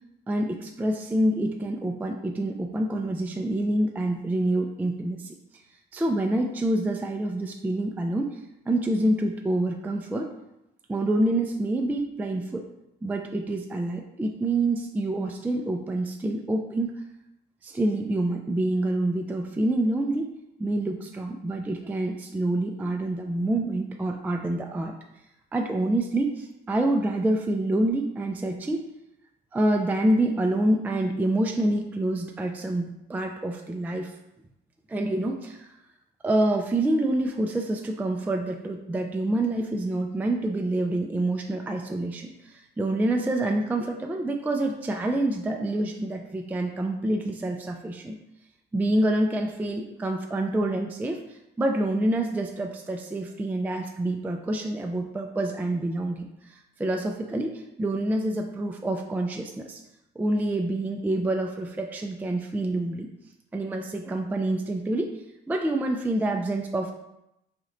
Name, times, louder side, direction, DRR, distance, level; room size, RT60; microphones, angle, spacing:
voice 1, 0.3-5.3 5.9-8.4 8.7-10.3 10.9-12.7 13.0-17.0 17.6-20.3 20.6-24.9 25.5-28.8 29.5-34.1 34.9-35.7 36.2-48.2 48.7-59.8 60.2-63.1 63.5-65.1 65.5-66.9, right 1 dB, 10° right, 3 dB, 0.3 m, -27 dB
4.2 x 3.0 x 2.5 m, 0.85 s
cardioid pair, 90°, 20 cm